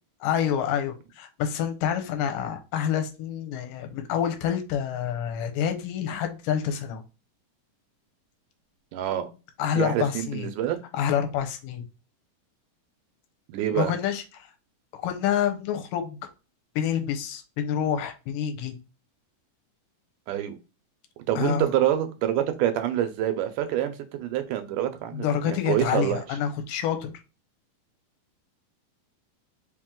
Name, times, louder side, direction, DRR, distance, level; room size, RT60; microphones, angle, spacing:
voice 1, 0.2-7.0 9.6-10.5 10.9-11.8 13.7-14.2 14.9-16.2 16.8-18.7 21.4-21.7 25.1-27.1, left 9 dB, 80° left, 2.4 m, -27 dB
voice 2, 8.9-9.3 9.7-10.8 13.5-13.9 20.3-20.6 21.3-26.2, right 11 dB, 80° right, 2.1 m, -26 dB
5.1 x 2.9 x 3.6 m
omnidirectional pair, 3.9 m